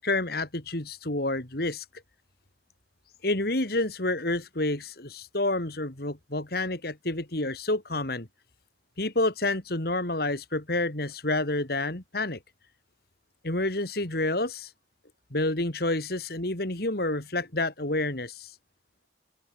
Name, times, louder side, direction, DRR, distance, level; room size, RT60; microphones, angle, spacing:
voice 1, 0.0-1.8 3.2-8.3 9.0-12.4 13.4-14.7 15.3-18.5, left 2 dB, 55° left, 3.0 m, -29 dB
open air
head